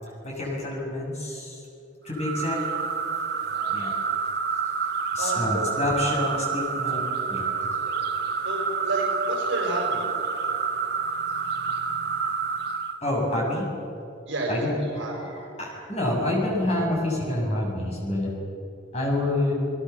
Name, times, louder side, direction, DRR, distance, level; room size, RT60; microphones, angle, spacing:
voice 1, 0.2-1.6 2.1-2.6 3.7-3.9 5.1-7.0 7.3-7.5 13.0-13.7 14.5-15.2 15.6-18.3 18.9-19.5, left 1 dB, 35° left, -2 dB, 7.0 m, -27 dB
Brood II cicadas near Macon Powhatan Co VA, 2.1-13.0, right 5 dB, 55° right, 1.1 m, -28 dB
voice 2, 5.2-5.7 7.7-8.1 8.4-10.0 14.3-15.3, right 1 dB, 70° right, -3 dB, 5.5 m, -31 dB
29.5 x 18.5 x 7.1 m, 2.7 s
head